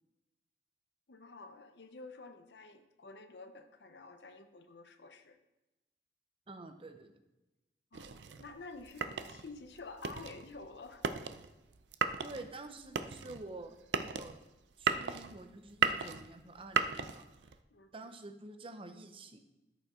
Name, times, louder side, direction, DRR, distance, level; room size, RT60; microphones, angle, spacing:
voice 1, 1.1-5.4 7.9-11.0 17.7-18.1, left 3 dB, 70° left, 7 dB, 0.7 m, -50 dB
voice 2, 6.5-7.2 12.2-13.7 14.0-14.4 14.8-17.6 17.9-19.4, right 2 dB, 30° right, 8 dB, 0.7 m, -48 dB
sound 1, 7.9-17.6, right 6 dB, 85° right, 0.5 m, -36 dB
13.0 x 5.3 x 3.7 m, 1.0 s
head